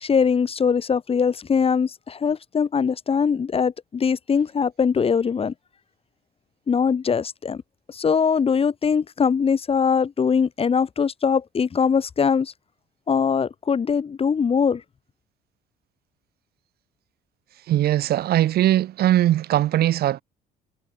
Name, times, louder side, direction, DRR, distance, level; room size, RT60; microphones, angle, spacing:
voice 1, 0.0-5.5 6.7-7.6 7.9-12.5 13.1-14.8, left 6 dB, 35° left, 4.0 m, -22 dB
voice 2, 17.7-20.2, right 13 dB, 65° right, 6.0 m, -20 dB
cardioid pair, 110°, 17 cm